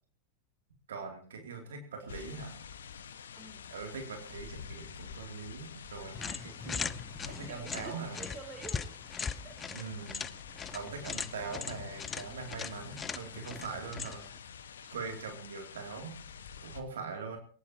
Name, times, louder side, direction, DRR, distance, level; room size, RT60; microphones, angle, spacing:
voice 1, 0.9-2.6 3.7-6.9 7.3-8.2 9.7-10.3 10.7-14.2 14.9-16.2 16.6-17.4, right 5 dB, 70° right, 4 dB, 2.9 m, -42 dB
sound 1, 2.1-16.8, left 7 dB, 75° left, 1.5 m, -48 dB
voice 2, 3.3-3.6 7.2-8.9 9.4-9.8, right 4 dB, 20° right, 5 dB, 4.5 m, -49 dB
sound 2, 6.1-14.4, left 6 dB, 20° left, 0.8 m, -40 dB
21.5 x 18.5 x 3.0 m, 0.41 s
figure-of-eight pair, 90°, 0 cm